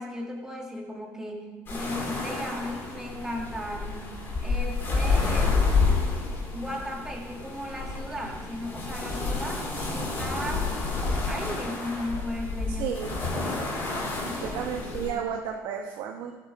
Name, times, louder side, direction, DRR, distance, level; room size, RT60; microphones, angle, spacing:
voice 1, 0.0-5.7 6.5-10.7 11.3-13.0 14.3-15.2, equal, 10° right, 0 dB, 1.9 m, -36 dB
sound 1, 1.7-15.1, left 3 dB, 30° left, 3.0 m, -29 dB
voice 2, 12.8-13.2 14.4-16.3, right 8 dB, 75° right, 2 dB, 1.0 m, -32 dB
15.5 x 8.0 x 5.1 m, 1.3 s
cardioid pair, 170°, 8 cm